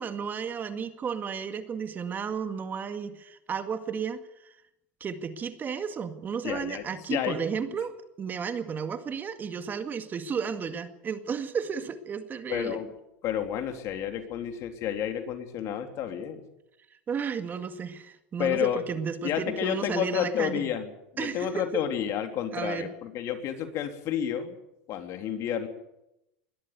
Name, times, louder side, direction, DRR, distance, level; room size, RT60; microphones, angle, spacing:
voice 1, 0.0-4.5 5.0-12.8 17.1-20.7 21.2-21.6 22.5-22.9, right 6 dB, 30° right, 9 dB, 2.0 m, -33 dB
voice 2, 6.4-6.8 7.1-7.8 12.5-12.9 13.2-16.4 18.4-18.8 19.2-24.6 24.9-25.7, left 9 dB, 50° left, 6 dB, 3.4 m, -30 dB
21.5 x 13.5 x 9.5 m, 0.87 s
supercardioid pair, 110°, 6 cm